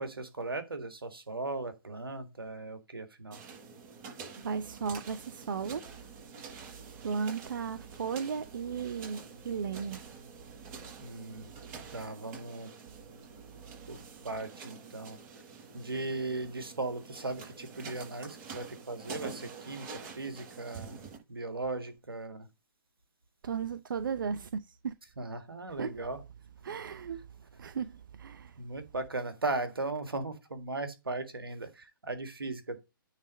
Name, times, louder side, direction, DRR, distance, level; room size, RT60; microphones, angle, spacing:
voice 1, 0.0-3.4 11.0-11.5 11.9-12.7 13.9-14.0 14.2-15.2 15.7-21.0 21.3-22.5 25.2-26.2 28.6-32.8, right 2 dB, 90° right, 1.8 m, -37 dB
sound 1, 3.3-21.2, right 5 dB, 35° right, 6.0 m, -48 dB
voice 2, 4.4-6.2 6.8-10.0 10.4-10.5 10.8-10.9 23.4-24.9 25.8-26.0 26.6-27.3 27.6-28.6, right 6 dB, 65° right, 0.7 m, -36 dB
9.7 x 4.1 x 5.2 m
hypercardioid pair, 135°, 12 cm